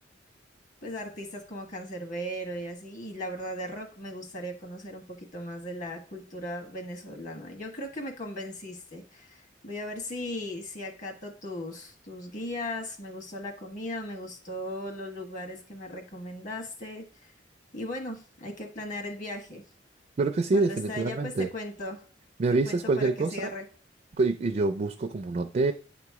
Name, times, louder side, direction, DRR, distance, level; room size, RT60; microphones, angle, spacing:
voice 1, 0.8-17.3 17.7-19.6 20.5-22.0 22.6-23.7, left 1 dB, 45° left, 3 dB, 1.4 m, -37 dB
voice 2, 20.2-21.5 22.4-23.5 24.2-25.7, right 3 dB, 40° right, 7 dB, 0.4 m, -26 dB
8.7 x 3.0 x 4.7 m, 0.39 s
head